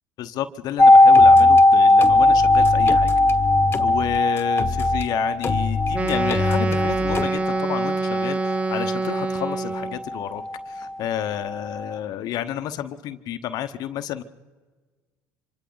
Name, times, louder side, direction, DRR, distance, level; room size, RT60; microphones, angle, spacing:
voice 1, 0.2-3.1 3.8-14.2, left 11 dB, 60° left, 9 dB, 1.0 m, -30 dB
sound 1, 0.8-10.5 10.8-10.9, left 2 dB, 10° left, 1.1 m, -17 dB
sound 2, 1.1-1.6 2.0-5.1 5.4-7.2, left 4 dB, 30° left, 1.5 m, -27 dB
Wind instrument woodwind instrument, 5.9-10.0, right 3 dB, 20° right, 0.9 m, -25 dB
26.0 x 25.0 x 4.0 m, 1.4 s
hypercardioid pair, 75°, 7 cm